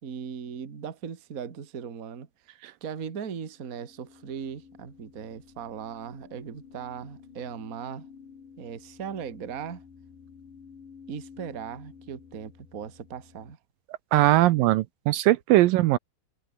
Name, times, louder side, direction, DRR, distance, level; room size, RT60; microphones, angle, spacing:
voice 1, 0.0-2.3 2.8-8.1 8.6-9.8 11.1-13.6 14.5-14.7, right 7 dB, 35° right, 1.5 m, -38 dB
sound 1, 3.4-13.5, left 6 dB, 60° left, 5.6 m, -51 dB
voice 2, 14.1-16.0, right 16 dB, 75° right, 2.4 m, -20 dB
omnidirectional pair, 4.2 m